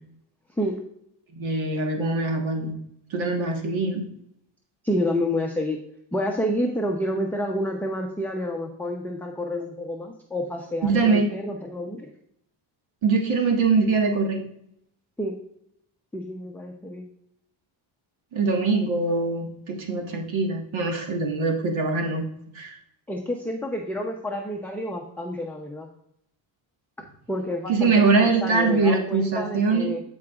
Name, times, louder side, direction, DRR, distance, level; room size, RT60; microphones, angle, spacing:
voice 1, 1.3-2.8 3.1-4.1 10.8-11.3 13.0-14.4 18.3-22.3 22.5-22.8 27.7-29.9, right 4 dB, 70° right, 2 dB, 1.6 m, -23 dB
voice 2, 4.8-5.8 6.1-12.1 15.2-15.3 16.1-17.0 23.1-25.9 27.3-30.0, left 1 dB, 5° left, 1 dB, 0.6 m, -29 dB
13.0 x 4.8 x 2.4 m, 0.73 s
cardioid pair, 120°, 49 cm